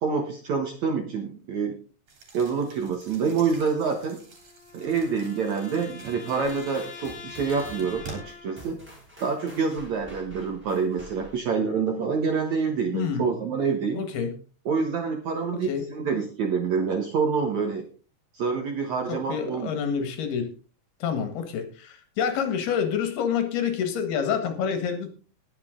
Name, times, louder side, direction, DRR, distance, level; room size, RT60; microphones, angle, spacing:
voice 1, 0.0-1.8 2.3-4.2 4.7-8.8 9.2-14.0 14.7-17.8 18.3-19.7, right 5 dB, 65° right, 4 dB, 1.9 m, -27 dB
sound 1, 2.1-8.2, right 4 dB, 40° right, 4.3 m, -47 dB
sound 2, 4.2-8.8, left 5 dB, 35° left, 3.0 m, -44 dB
sound 3, 6.4-11.5, equal, 5° right, 4.3 m, -48 dB
voice 2, 13.9-14.3 15.7-15.9 19.1-20.5 21.0-25.1, left 7 dB, 70° left, 7 dB, 3.5 m, -27 dB
20.0 x 7.4 x 3.7 m, 0.37 s
omnidirectional pair, 4.8 m